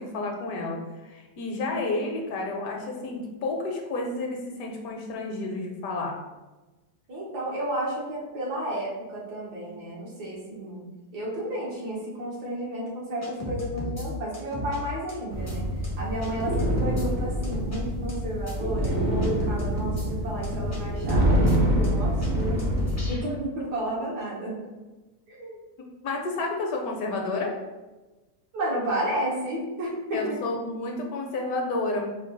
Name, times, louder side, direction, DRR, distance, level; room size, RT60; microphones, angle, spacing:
voice 1, 0.0-6.2 26.0-27.6 30.1-32.1, left 2 dB, 70° left, 1 dB, 1.1 m, -30 dB
voice 2, 7.1-10.9 11.1-15.7 16.0-24.6 25.3-25.6 28.5-30.4, right 1 dB, 85° right, -4 dB, 1.8 m, -32 dB
sound 1, 13.2-14.1 14.3-14.8 15.1-15.2 15.5-15.6 15.8-15.9 16.2-17.1 17.4-17.8 18.1-18.2 18.5-18.6 18.8-18.9 19.2-20.1 20.4-20.8 21.1-21.2 21.5-21.6 21.8-21.9 22.2-23.2, left 1 dB, 20° left, 0.4 m, -34 dB
sound 2, 15.3-23.1, equal, 65° right, 0.4 m, -26 dB
4.5 x 2.3 x 3.8 m, 1.1 s
omnidirectional pair, 1.7 m